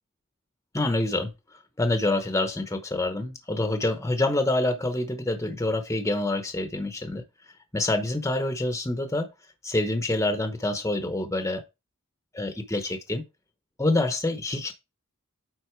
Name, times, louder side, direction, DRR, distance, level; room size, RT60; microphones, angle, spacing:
voice 1, 0.7-1.3 1.8-7.2 7.7-9.3 9.6-11.6 12.3-13.2 13.8-14.7, left 2 dB, 15° left, 0.9 m, -26 dB
9.4 x 4.1 x 4.6 m
head